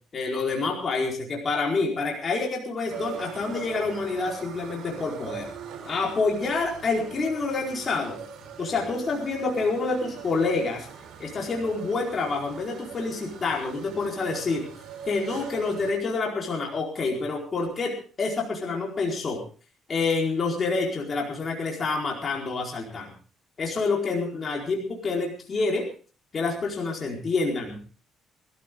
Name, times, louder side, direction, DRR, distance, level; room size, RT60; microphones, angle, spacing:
voice 1, 0.1-5.5 5.9-8.2 8.6-10.9 11.2-14.7 15.1-19.4 19.9-23.1 23.6-25.9 26.3-27.8, left 3 dB, 40° left, -1 dB, 4.5 m, -27 dB
sound 1, 2.9-15.9, right 7 dB, 65° right, 4.9 m, -41 dB
21.5 x 14.0 x 3.8 m, 0.38 s
cardioid pair, 100°, 0 cm